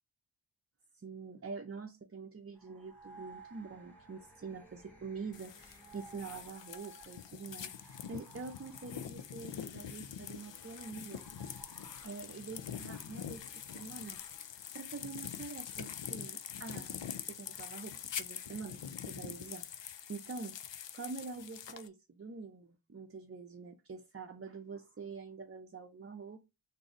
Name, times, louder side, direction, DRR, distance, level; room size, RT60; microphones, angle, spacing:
voice 1, 0.9-11.2 12.0-14.2 14.7-17.0 17.3-20.6 20.9-26.4, right 4 dB, 35° right, 0.6 m, -46 dB
sound 1, 2.6-14.8, right 3 dB, 5° left, 1.8 m, -58 dB
sound 2, 5.3-21.9, left 8 dB, 85° left, 0.5 m, -45 dB
3.9 x 2.6 x 4.8 m
wide cardioid pair, 45°, 42 cm